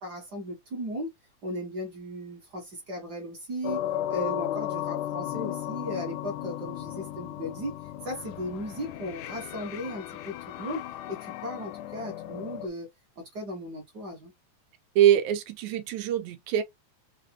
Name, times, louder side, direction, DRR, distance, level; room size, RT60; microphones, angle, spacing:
voice 1, 0.0-1.1 1.4-3.8 4.1-7.7 8.0-12.9 13.2-14.3, equal, 45° right, 1.4 m, -36 dB
sound 1, 3.6-12.7, left 12 dB, 80° left, 1.8 m, -35 dB
voice 2, 15.0-16.6, right 11 dB, 85° right, 2.1 m, -23 dB
4.8 x 2.5 x 2.9 m
omnidirectional pair, 3.4 m